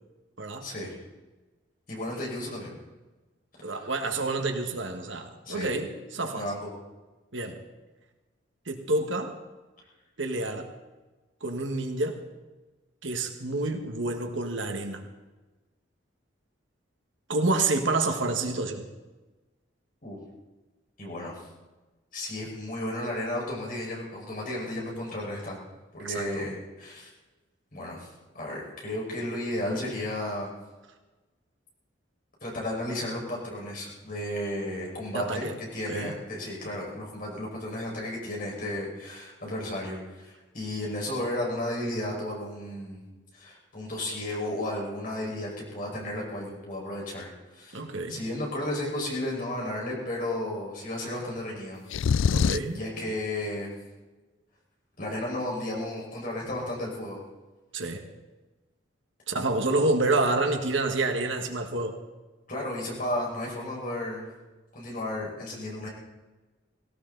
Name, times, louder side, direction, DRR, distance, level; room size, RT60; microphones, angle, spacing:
voice 1, 0.6-1.0 1.9-2.8 3.7-3.9 5.5-5.7 6.3-6.7 20.0-20.2 21.0-21.4 22.1-25.6 25.9-27.1 27.7-28.1 28.3-30.5 32.4-43.0 43.3-47.8 48.1-51.8 52.3-53.7 55.0-57.2 62.5-64.3 64.7-65.9, left 1 dB, 45° left, -3 dB, 5.5 m, -33 dB
voice 2, 3.6-6.5 7.3-7.6 8.7-9.4 10.2-10.7 11.4-12.2 13.0-15.0 17.3-18.9 26.0-26.4 35.1-35.5 35.9-36.1 47.7-48.2 52.3-52.8 57.7-58.1 59.3-62.0, right 2 dB, 80° right, 5 dB, 1.8 m, -28 dB
sound 1, 51.9-52.8, left 6 dB, 90° left, 0.4 m, -24 dB
18.0 x 17.5 x 4.1 m, 1.2 s
head